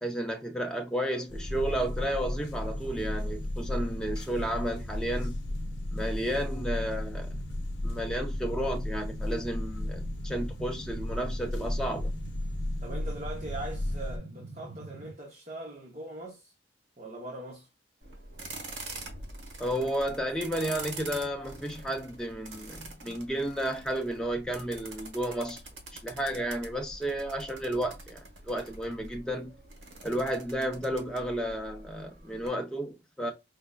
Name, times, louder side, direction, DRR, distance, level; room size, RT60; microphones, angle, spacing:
voice 1, 0.0-5.4 5.9-7.3 7.8-12.2 19.6-25.6 26.0-29.5 30.0-33.3, right 1 dB, 5° left, 0.6 m, -32 dB
sound 1, 1.3-14.2, left 1 dB, 70° left, 0.6 m, -34 dB
sound 2, 1.5-15.1, right 1 dB, 70° right, 0.7 m, -46 dB
voice 2, 12.8-16.5 17.0-17.7, right 2 dB, 35° right, 0.7 m, -41 dB
sound 3, 18.0-32.5, right 2 dB, 90° right, 1.2 m, -45 dB
4.9 x 2.1 x 2.3 m
head